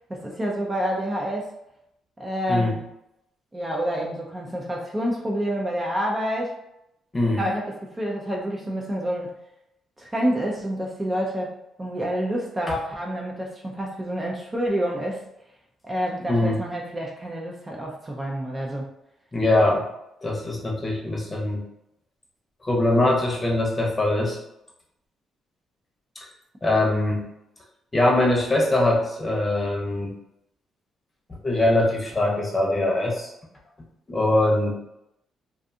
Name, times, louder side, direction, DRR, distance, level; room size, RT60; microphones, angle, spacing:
voice 1, 0.1-1.5 2.2-2.8 3.5-6.5 7.4-7.7 7.9-9.3 10.0-15.2 15.8-18.9, equal, 20° right, -1 dB, 0.4 m, -28 dB
voice 2, 7.1-7.5 16.3-16.6 19.3-19.8 20.2-21.6 22.6-24.4 26.2-26.3 26.6-27.3 27.9-30.1 31.4-33.3 34.1-34.7, left 2 dB, 25° left, -2 dB, 0.8 m, -22 dB
2.5 x 2.3 x 2.6 m, 0.83 s
cardioid pair, 90°, 0 cm